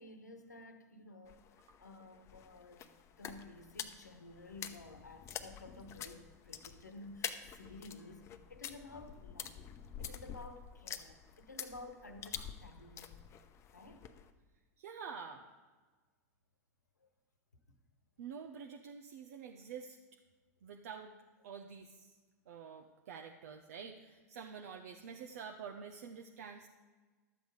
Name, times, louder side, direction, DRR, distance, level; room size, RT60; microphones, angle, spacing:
voice 1, 0.0-1.4 1.8-9.6 10.0-13.2 13.7-14.1 17.0-17.1, left 2 dB, 90° left, 1.2 m, -53 dB
sound 1, 1.3-14.3, left 9 dB, 30° left, 0.8 m, -48 dB
voice 2, 14.8-15.5 18.2-20.0 20.6-21.1 21.4-22.1 22.5-26.7, right 6 dB, 60° right, 0.8 m, -48 dB
12.0 x 7.9 x 4.8 m
figure-of-eight pair, 95°, 9 cm